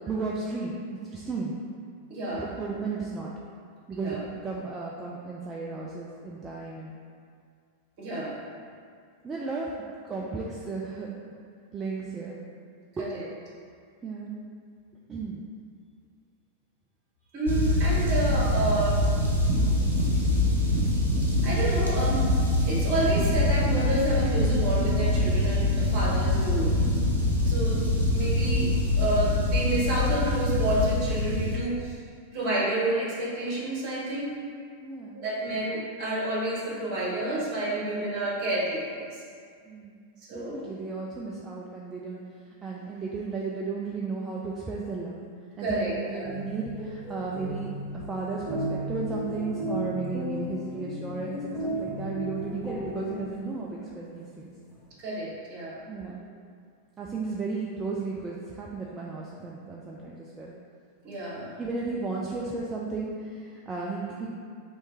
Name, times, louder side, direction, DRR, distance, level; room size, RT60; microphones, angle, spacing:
voice 1, 0.1-1.6 2.3-3.3 3.9-6.9 9.2-9.8 10.0-11.3 11.7-12.4 13.0-13.1 14.0-14.3 15.1-15.4 34.8-35.3 39.7-40.0 40.3-42.2 42.6-45.2 45.6-54.5 55.9-56.2 57.0-60.5 61.6-64.3, right 4 dB, 20° right, -4 dB, 0.4 m, -34 dB
voice 2, 2.1-2.5 3.9-4.2 8.0-8.4 13.0-13.3 17.3-19.1 21.4-22.2 22.6-26.8 27.4-27.8 28.1-28.7 29.0-32.0 32.3-34.3 35.1-39.0 40.3-40.6 45.6-46.3 55.0-55.7 61.0-61.5, right 1 dB, 45° right, -6 dB, 1.4 m, -29 dB
sound 1, 17.5-31.6, left 1 dB, 85° right, 0.8 m, -24 dB
sound 2, 46.1-53.7, equal, 20° left, 1.5 m, -34 dB
3.2 x 3.1 x 4.7 m, 2.2 s
figure-of-eight pair, 90°, 0 cm